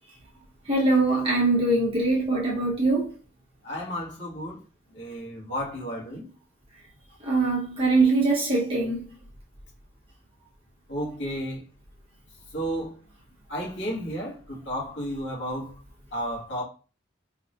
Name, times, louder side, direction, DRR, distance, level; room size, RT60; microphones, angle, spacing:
voice 1, 0.7-3.1 7.2-9.0, right 2 dB, 30° right, 1.2 m, -22 dB
voice 2, 3.6-4.6 4.9-6.3 10.9-11.6 12.5-12.9 13.5-15.7 16.1-16.6, equal, 70° left, 2.1 m, -32 dB
4.4 x 3.3 x 2.6 m
head